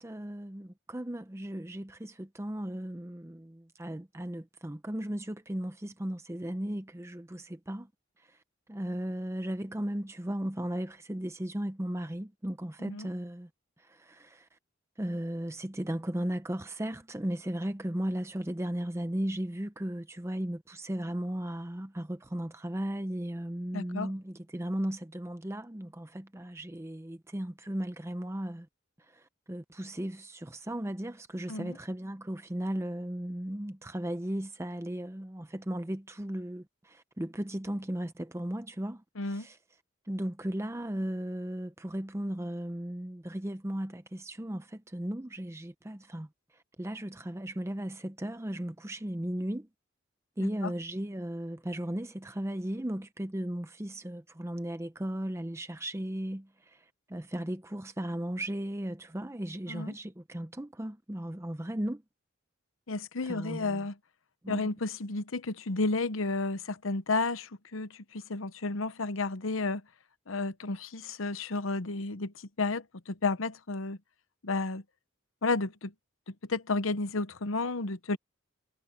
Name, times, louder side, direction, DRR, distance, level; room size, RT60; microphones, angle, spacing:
voice 1, 0.0-7.9 8.2-8.4 8.7-13.5 13.8-14.6 15.0-28.7 29.0-39.6 40.0-49.7 50.4-62.0 63.2-63.9 64.4-64.7, right 1 dB, 15° right, 0.6 m, -36 dB
voice 2, 23.7-24.1 31.5-31.8 39.2-39.5 59.7-59.9 62.9-63.9 64.5-69.8 70.3-74.0 74.4-74.8 75.4-75.9 76.3-78.2, left 3 dB, 80° left, 1.0 m, -32 dB
head